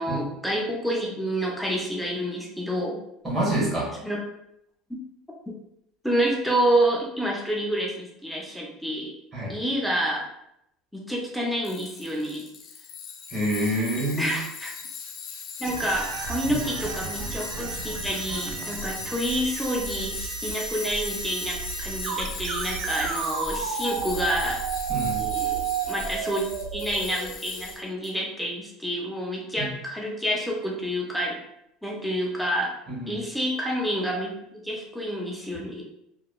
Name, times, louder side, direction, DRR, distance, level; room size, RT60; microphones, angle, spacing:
voice 1, 0.0-3.0 4.0-4.2 4.9-5.0 6.0-9.1 9.5-10.3 10.9-12.5 14.2-14.7 15.6-24.6 25.1-26.4 26.7-31.4 31.8-32.7 33.1-34.3 34.6-35.9, equal, ahead, -2 dB, 0.5 m, -28 dB
voice 2, 3.2-3.9 9.3-9.5 13.3-14.3 16.5-16.6 24.9-25.3 29.6-29.7 32.9-33.1, right 1 dB, 20° right, -5 dB, 1.4 m, -27 dB
Tools, 11.6-28.1, left 6 dB, 55° left, 0.4 m, -39 dB
sound 1, 15.6-27.8, right 6 dB, 70° right, 0.3 m, -32 dB
2.9 x 2.2 x 2.3 m, 0.79 s
supercardioid pair, 120°, 0 cm